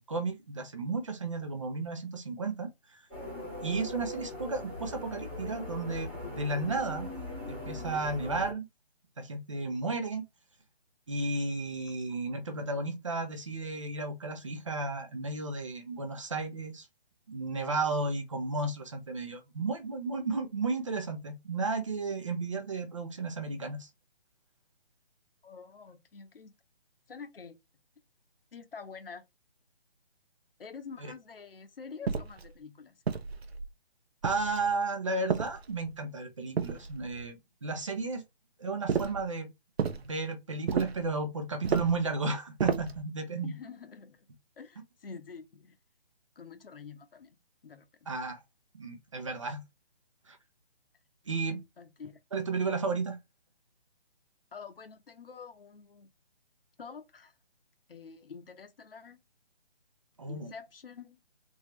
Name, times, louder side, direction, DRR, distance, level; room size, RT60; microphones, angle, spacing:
voice 1, 0.0-3.0 3.6-7.1 7.5-8.7 9.2-10.2 11.1-16.9 17.3-23.9 31.0-31.1 34.2-38.2 38.6-39.5 39.9-43.6 48.1-48.4 48.7-49.6 50.3-50.4 51.3-51.6 52.3-53.2 60.2-60.5, right 3 dB, 30° right, 0.7 m, -33 dB
sound 1, 3.1-8.5, left 2 dB, 5° right, 1.1 m, -40 dB
voice 2, 25.4-26.5 27.1-27.6 28.5-29.2 30.6-32.9 43.4-44.2 44.6-45.7 46.4-47.4 47.6-48.1 51.8-52.2 54.5-56.1 56.8-57.3 57.9-59.2 60.3-61.2, left 5 dB, 60° left, 0.9 m, -47 dB
sound 2, 32.1-32.5 33.1-33.7 34.2-34.7 35.3-35.9 36.6-37.2 38.9-39.3 39.8-40.1 40.7-41.1 41.6-42.0 42.6-43.0, right 6 dB, 70° right, 0.8 m, -32 dB
3.6 x 3.0 x 3.1 m
hypercardioid pair, 170°, 32 cm